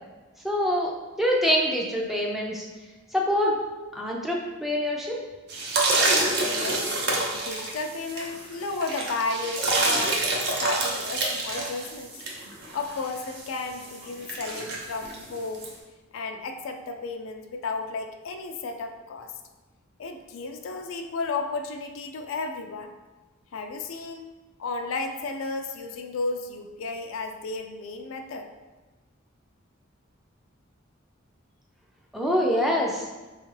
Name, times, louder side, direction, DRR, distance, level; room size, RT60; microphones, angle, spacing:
voice 1, 0.4-0.9 1.2-2.6 3.1-3.6 3.9-5.2 32.1-33.1, equal, ahead, -2 dB, 0.4 m, -25 dB
sound 1, 5.5-15.7, right 2 dB, 55° right, 0.6 m, -27 dB
voice 2, 6.4-6.9 7.3-10.2 10.6-12.2 12.7-15.7 16.1-19.3 20.0-22.9 23.5-24.3 24.6-28.5, left 3 dB, 80° left, 5 dB, 0.4 m, -33 dB
4.3 x 2.4 x 3.1 m, 1.2 s
head